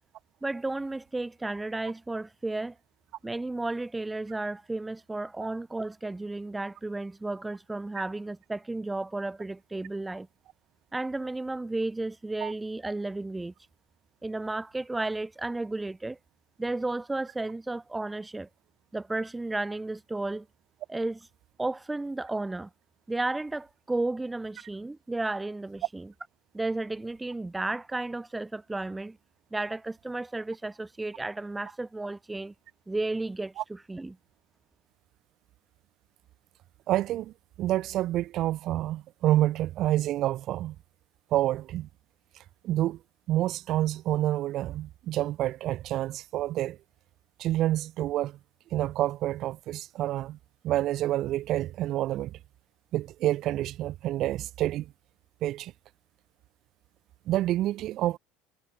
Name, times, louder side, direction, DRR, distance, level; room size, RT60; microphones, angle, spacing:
voice 1, 0.4-2.8 3.2-10.3 10.9-13.5 14.2-16.2 16.6-18.5 18.9-20.5 20.9-21.2 21.6-22.7 23.1-26.1 26.5-29.2 29.5-32.5 32.9-34.2, right 2 dB, 10° right, 0.7 m, -33 dB
voice 2, 36.9-37.3 37.6-40.7 41.3-41.9 42.6-43.0 43.3-46.8 47.4-48.4 48.7-50.4 50.6-52.4 52.9-54.9 55.4-55.7 57.3-58.2, right 14 dB, 55° right, 0.6 m, -28 dB
hypercardioid pair, 85°, 0 cm